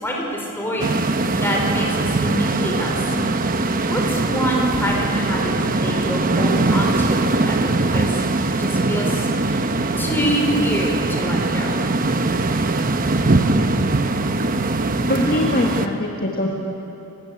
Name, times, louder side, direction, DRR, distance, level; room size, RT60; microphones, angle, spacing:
voice 1, 0.0-3.0 3.9-8.2 8.6-9.6 10.0-11.8, equal, 10° left, -1 dB, 4.6 m, -26 dB
sound 1, 0.8-15.9, right 2 dB, 40° right, 0.9 m, -21 dB
voice 2, 15.1-16.5, left 1 dB, 45° left, -1 dB, 1.9 m, -22 dB
28.5 x 16.5 x 8.4 m, 2.8 s
head